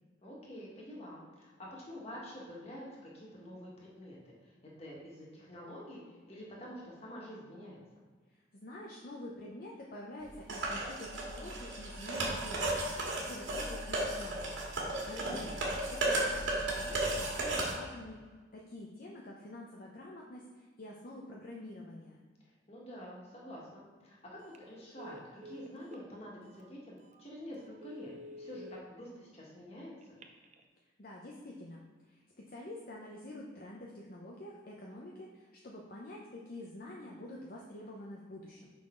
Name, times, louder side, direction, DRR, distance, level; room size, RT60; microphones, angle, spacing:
voice 1, 0.2-4.3 4.6-7.8 15.1-15.7 22.7-28.1 28.4-29.9, equal, 35° left, -4 dB, 1.7 m, -47 dB
voice 2, 8.5-14.6 14.9-15.5 15.9-18.2 18.5-22.2 31.0-31.8 32.1-32.2 32.5-38.7, left 1 dB, 50° left, -2 dB, 0.7 m, -47 dB
sound 1, 10.5-17.7, right 2 dB, 90° right, 1.9 m, -34 dB
Telephone, 24.4-24.6 25.0-26.0 26.6-26.7 27.1-27.2 27.7-28.8 30.0-30.6, equal, 40° right, 0.5 m, -50 dB
6.0 x 5.8 x 3.8 m, 1.4 s
head